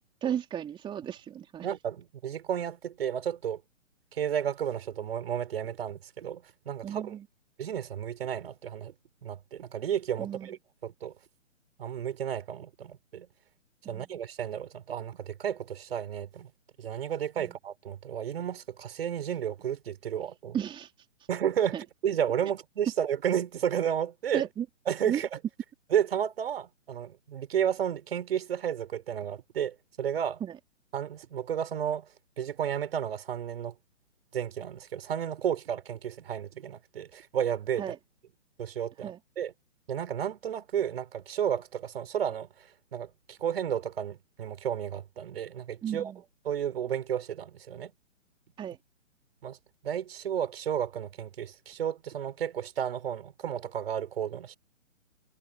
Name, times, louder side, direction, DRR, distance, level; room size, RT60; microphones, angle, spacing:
voice 1, 0.0-1.7 6.8-7.2 10.2-10.5 13.8-14.1 17.4-17.5 20.5-20.9 21.7-21.8 24.3-24.6 25.0-25.4 30.4-30.5 37.8-38.0 39.0-39.2 45.8-46.2 48.6-48.8, right 9 dB, 10° right, 3.4 m, -34 dB
voice 2, 1.6-3.6 4.1-7.2 7.6-8.9 9.2-11.1 11.8-13.3 13.9-16.5 16.8-20.6 21.3-21.8 22.0-24.5 24.9-25.3 25.9-30.4 30.9-32.1 32.4-33.7 34.3-37.9 38.6-39.5 39.9-42.5 42.9-46.1 46.5-47.9 49.4-49.6 49.8-54.6, right 9 dB, 50° right, 5.7 m, -32 dB
figure-of-eight pair, 135°, 39 cm